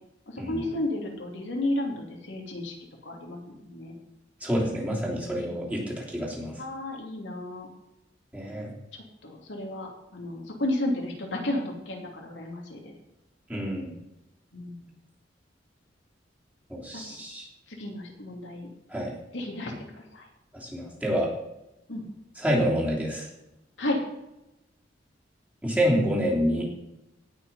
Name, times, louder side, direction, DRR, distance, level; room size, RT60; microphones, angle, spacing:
voice 1, 0.5-2.7 3.1-3.9 6.6-7.7 9.2-9.9 10.1-11.6 11.9-12.9 14.5-14.8 17.8-18.7 19.3-19.7 20.1-20.2 21.9-22.0 23.8-24.0, left 1 dB, 90° left, 0 dB, 2.7 m, -32 dB
voice 2, 4.4-6.5 8.3-8.7 13.5-13.9 16.7-17.5 18.9-19.1 20.5-21.3 22.4-23.3 25.6-26.7, equal, 10° right, -4 dB, 3.1 m, -27 dB
17.5 x 6.0 x 5.5 m, 0.92 s
head